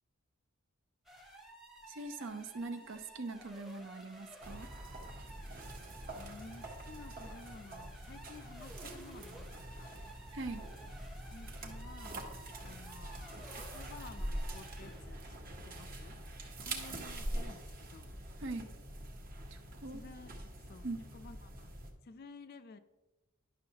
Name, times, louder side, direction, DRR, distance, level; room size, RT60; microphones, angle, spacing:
sound 1, 1.1-15.1, right 1 dB, ahead, 0.7 m, -54 dB
voice 1, 1.9-4.7 10.3-10.7 18.4-18.7 19.5-20.0 20.8-21.0, right 3 dB, 55° right, 8 dB, 0.6 m, -42 dB
sound 2, 4.4-21.9, right 1 dB, 40° right, 1.0 m, -44 dB
voice 2, 6.2-9.9 11.3-12.3 12.6-15.3 15.6-16.2 16.6-18.2 19.9-21.7 22.0-22.8, left 4 dB, 45° left, 11 dB, 0.4 m, -53 dB
10.5 x 6.3 x 2.9 m, 1.1 s
head